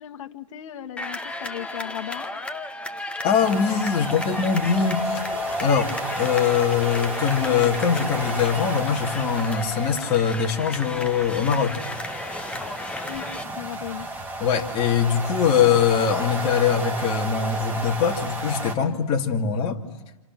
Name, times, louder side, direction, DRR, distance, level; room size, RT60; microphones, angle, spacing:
voice 1, 0.0-2.3 13.1-14.1, left 11 dB, 60° left, 6 dB, 1.8 m, -36 dB
sound 1, 1.0-13.5, left 2 dB, 5° left, 1.1 m, -34 dB
voice 2, 3.2-5.2 5.6-11.8 14.4-19.8, left 7 dB, 30° left, 1 dB, 2.6 m, -22 dB
sound 2, 3.3-18.7, right 1 dB, 10° right, 2.5 m, -32 dB
29.0 x 28.5 x 6.1 m, 1.0 s
hypercardioid pair, 145°, 19 cm